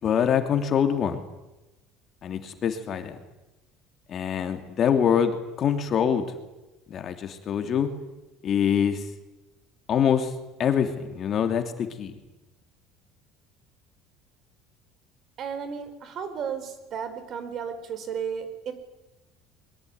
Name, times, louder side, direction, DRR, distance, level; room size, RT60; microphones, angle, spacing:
voice 1, 0.0-1.2 2.2-3.2 4.1-6.3 6.9-7.9 8.4-9.0 9.9-10.3 10.6-12.1, left 8 dB, 40° left, 6 dB, 2.9 m, -24 dB
voice 2, 15.4-18.7, right 7 dB, 45° right, 11 dB, 4.4 m, -34 dB
23.0 x 21.5 x 9.7 m, 1.0 s
cardioid pair, 130°, 0 cm